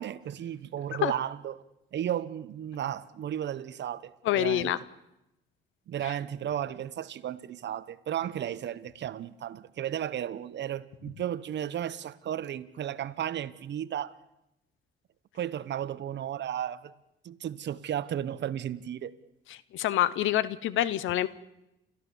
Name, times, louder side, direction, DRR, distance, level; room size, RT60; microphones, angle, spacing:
voice 1, 0.0-1.6 1.9-4.7 5.9-14.2 15.3-16.9 17.2-19.2, right 10 dB, 60° right, 1.0 m, -34 dB
voice 2, 4.2-4.8 6.0-6.1 19.5-21.3, left 12 dB, 85° left, 0.9 m, -27 dB
29.5 x 14.0 x 7.1 m
cardioid pair, 90°, 20 cm